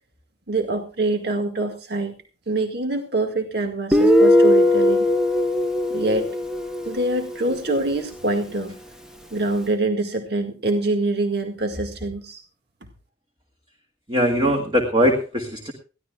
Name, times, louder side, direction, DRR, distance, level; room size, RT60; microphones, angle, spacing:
voice 1, 0.5-2.1 2.5-5.1 5.9-6.3 6.9-8.7 9.3-12.4, right 2 dB, 60° right, 5 dB, 1.9 m, -25 dB
Guitar, 3.9-7.4, left 1 dB, 5° right, 1.0 m, -18 dB
voice 2, 14.1-15.7, equal, 25° right, 3 dB, 2.0 m, -20 dB
21.0 x 15.0 x 2.4 m, 0.33 s
head